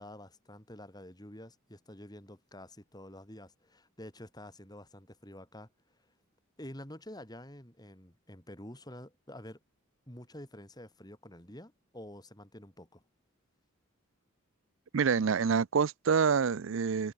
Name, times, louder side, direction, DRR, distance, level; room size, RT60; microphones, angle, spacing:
voice 1, 0.0-6.0 6.6-9.6 10.1-13.0, left 1 dB, 20° left, 5.1 m, -48 dB
voice 2, 14.9-17.1, right 6 dB, 60° right, 0.5 m, -27 dB
head